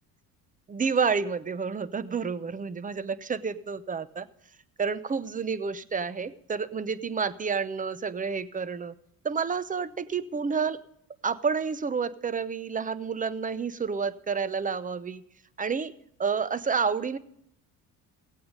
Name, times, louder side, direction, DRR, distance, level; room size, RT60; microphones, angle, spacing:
voice 1, 0.7-4.3 4.8-8.9 9.2-10.8 11.2-15.2 15.6-15.9 16.2-17.2, right 5 dB, 20° right, 17 dB, 0.8 m, -29 dB
16.5 x 8.5 x 5.3 m, 0.73 s
supercardioid pair, 80°, 38 cm